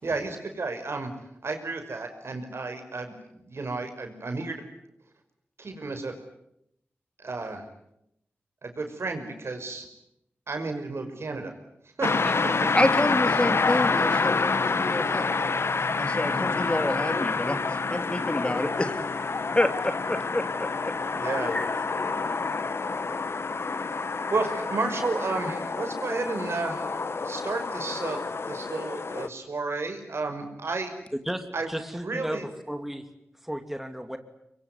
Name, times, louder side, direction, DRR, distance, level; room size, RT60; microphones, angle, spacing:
voice 1, 0.0-1.1 1.4-3.1 3.4-4.7 5.6-6.1 7.2-7.6 8.6-9.9 10.5-11.5 12.0-12.1 21.1-21.5 23.7-24.0 24.3-27.0 27.2-28.2 28.5-30.9 31.5-31.7 32.0-32.5, right 3 dB, 65° right, 6 dB, 5.5 m, -32 dB
sound 1, 12.0-29.3, left 4 dB, 65° left, 1.4 m, -28 dB
voice 2, 12.7-15.5 15.8-17.6 17.9-20.9 21.5-21.7, left 1 dB, 25° left, 8 dB, 2.9 m, -28 dB
voice 3, 31.2-33.1 33.4-34.2, equal, 5° right, 7 dB, 2.8 m, -34 dB
24.5 x 23.0 x 9.7 m, 0.80 s
cardioid pair, 45°, 5 cm